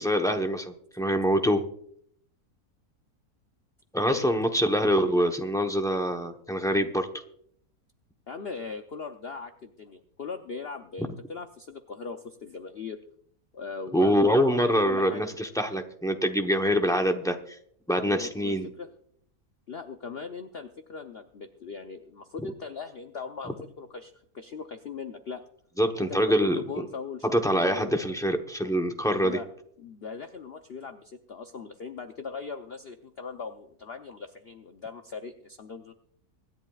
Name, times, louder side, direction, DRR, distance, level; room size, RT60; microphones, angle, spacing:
voice 1, 0.0-1.7 3.9-7.1 13.9-17.6 17.9-18.7 25.8-26.6 27.3-29.4, equal, 5° left, 4 dB, 0.6 m, -25 dB
voice 2, 4.0-4.3 8.3-13.0 13.5-15.2 18.1-18.9 19.7-25.4 26.0-27.9 29.2-29.5 29.8-35.9, left 5 dB, 50° left, 6 dB, 0.8 m, -39 dB
25.0 x 10.5 x 2.4 m, 0.66 s
omnidirectional pair, 1.7 m